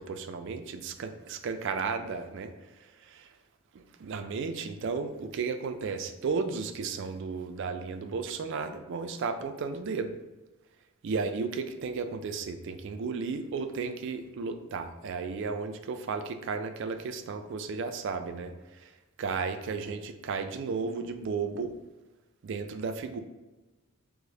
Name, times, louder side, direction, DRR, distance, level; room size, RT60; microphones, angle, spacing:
voice 1, 0.0-3.3 3.7-10.1 11.0-18.9 19.2-21.8 22.4-23.2, right 5 dB, 60° right, 8 dB, 0.3 m, -34 dB
4.7 x 2.0 x 2.7 m, 1.1 s
head